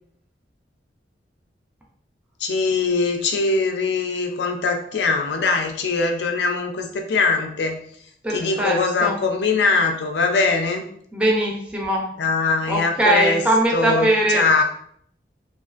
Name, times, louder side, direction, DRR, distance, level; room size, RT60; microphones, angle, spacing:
voice 1, 2.4-7.8 8.3-10.8 12.2-13.5 13.7-14.6, left 4 dB, 70° left, 4 dB, 0.4 m, -22 dB
voice 2, 8.2-9.1 11.1-12.0 12.7-14.4, right 1 dB, 5° right, -2 dB, 0.4 m, -21 dB
2.4 x 2.4 x 2.4 m, 0.65 s
head